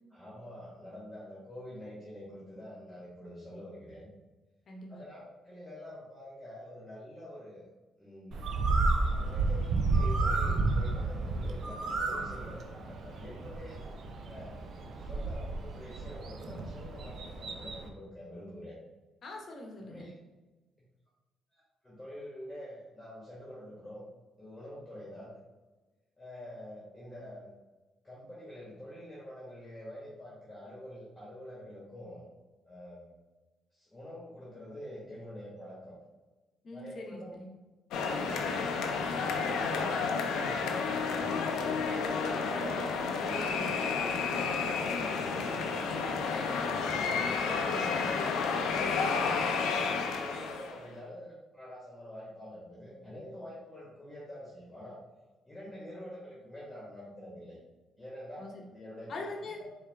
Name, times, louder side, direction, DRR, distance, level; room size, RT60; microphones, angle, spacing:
voice 1, 0.1-4.1 4.9-7.7 8.0-8.5 9.2-13.9 14.2-14.6 15.0-18.7 19.9-20.1 21.5-24.0 24.4-25.3 26.2-27.5 28.0-32.3 32.6-33.1 33.7-35.9 36.7-37.4 37.9-42.8 43.6-48.1 48.7-55.0 55.5-57.6 58.0-59.3, left 1 dB, 15° left, -7 dB, 1.4 m, -46 dB
voice 2, 4.7-5.0 12.1-12.3 19.2-20.1 36.6-37.6 43.2-44.2 48.7-49.3 58.4-58.7 59.1-59.6, left 2 dB, 55° left, 1 dB, 0.9 m, -43 dB
Bird, 8.3-17.9, right 3 dB, 60° right, 0.6 m, -32 dB
sound 1, 37.9-50.8, left 5 dB, 85° left, 0.5 m, -31 dB
4.6 x 2.7 x 3.5 m, 1.2 s
cardioid pair, 90°, 0 cm